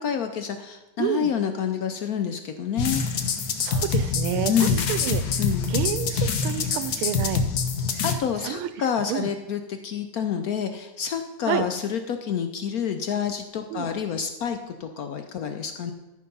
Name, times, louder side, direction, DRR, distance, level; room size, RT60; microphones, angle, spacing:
voice 1, 0.0-3.0 4.5-4.9 5.4-5.7 8.0-15.9, left 8 dB, 75° left, 7 dB, 0.8 m, -28 dB
voice 2, 1.0-1.3 3.6-5.2 5.7-7.4 7.9-8.0 8.4-8.7 9.1-9.3 11.5-11.6 13.7-13.9, right 12 dB, 90° right, 12 dB, 1.5 m, -29 dB
sound 1, 2.8-8.2, left 5 dB, 55° left, 1.2 m, -25 dB
13.5 x 5.1 x 5.4 m, 1.1 s
omnidirectional pair, 2.3 m